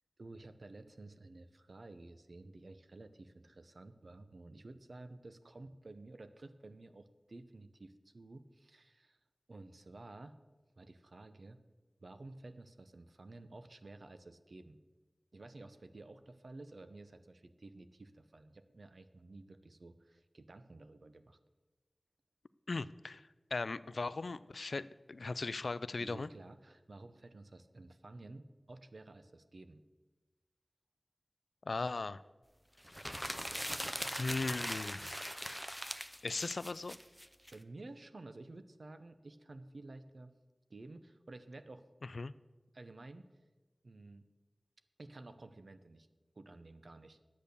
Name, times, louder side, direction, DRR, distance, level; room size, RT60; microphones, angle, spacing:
voice 1, 0.2-9.2 9.5-10.4 10.8-11.6 12.0-14.8 15.3-21.4 26.0-29.8 37.5-40.3 40.7-41.8 42.7-43.3 43.8-44.2 45.0-46.1 46.4-47.2, right 2 dB, 70° right, 10 dB, 0.7 m, -52 dB
voice 2, 22.7-26.3 31.7-32.2 32.9-33.0 34.2-35.3 36.2-37.0 42.1-42.3, left 3 dB, 80° left, 16 dB, 0.3 m, -38 dB
sound 1, 32.8-37.5, equal, ahead, 0.6 m, -41 dB
10.5 x 8.3 x 6.9 m, 1.2 s
wide cardioid pair, 70°, 0 cm